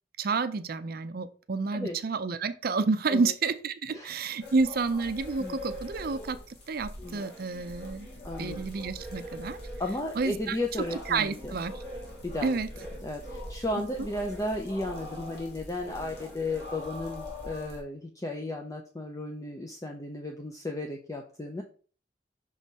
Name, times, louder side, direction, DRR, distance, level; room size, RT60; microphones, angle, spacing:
voice 1, 0.2-6.4 6.7-8.1 8.4-9.6 10.2-10.6 11.1-11.7 12.4-12.7, right 4 dB, 55° right, 12 dB, 0.5 m, -29 dB
sound 1, 4.4-17.8, left 1 dB, 65° left, 1.9 m, -42 dB
voice 2, 8.2-8.6 9.8-11.5 12.2-12.6 13.0-21.6, left 2 dB, 20° left, 2 dB, 0.6 m, -34 dB
6.2 x 3.8 x 4.1 m, 0.40 s
head